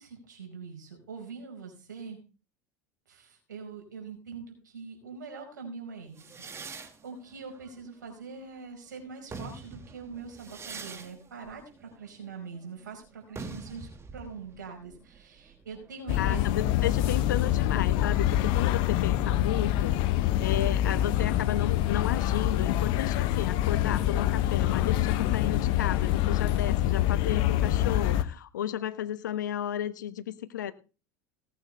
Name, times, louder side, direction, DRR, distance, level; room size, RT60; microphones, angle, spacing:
voice 1, 0.0-2.2 3.1-16.4, right 5 dB, 85° right, 2 dB, 5.0 m, -43 dB
sound 1, 6.2-8.6 9.1-16.6, right 4 dB, 25° right, 1.9 m, -45 dB
sound 2, 16.1-28.2, left 13 dB, 60° left, 1.1 m, -26 dB
voice 2, 16.2-20.0 20.4-30.7, left 11 dB, 85° left, 13 dB, 1.1 m, -33 dB
18.5 x 9.1 x 3.3 m, 0.33 s
hypercardioid pair, 80°, 10 cm